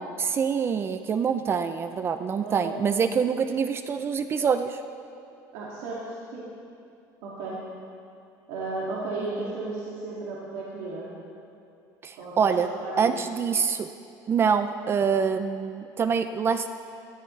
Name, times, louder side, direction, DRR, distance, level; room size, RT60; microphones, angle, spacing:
voice 1, 0.2-4.8 9.2-9.5 12.0-12.7 13.0-13.9 14.3-16.7, right 6 dB, 30° right, 10 dB, 0.4 m, -25 dB
voice 2, 2.4-2.8 5.5-6.5 7.2-7.6 8.5-11.1 12.2-13.1, right 3 dB, 90° right, -6 dB, 2.2 m, -34 dB
17.5 x 14.0 x 3.2 m, 2.5 s
cardioid pair, 135°, 8 cm